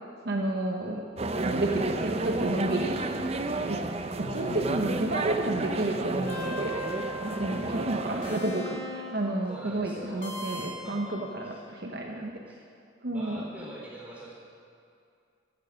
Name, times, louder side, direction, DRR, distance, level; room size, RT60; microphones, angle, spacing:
voice 1, 0.2-1.0 1.4-3.0 3.7-3.8 4.3-6.8 7.2-12.3 13.0-13.5, right 1 dB, 55° right, 1 dB, 0.9 m, -30 dB
sound 1, 1.2-8.4, right 2 dB, 30° right, 0.6 m, -32 dB
sound 2, 4.2-9.3 10.2-11.0, equal, 45° left, 2.3 m, -40 dB
voice 2, 9.5-11.2 11.4-11.8 12.5-12.6 13.1-14.3, right 1 dB, 5° right, -5 dB, 3.4 m, -45 dB
14.0 x 8.7 x 7.4 m, 2.4 s
head